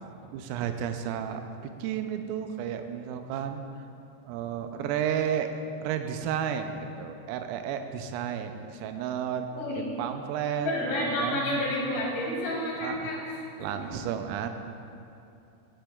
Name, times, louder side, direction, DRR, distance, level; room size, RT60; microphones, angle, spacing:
voice 1, 0.2-3.6 4.2-9.5 9.8-11.6 12.8-13.1 13.6-14.5, right 8 dB, 85° right, 7 dB, 3.2 m, -32 dB
voice 2, 9.5-9.8 10.6-13.2 13.6-13.9, left 1 dB, 65° left, -7 dB, 4.6 m, -30 dB
15.0 x 8.0 x 2.3 m, 2.6 s
omnidirectional pair, 5.9 m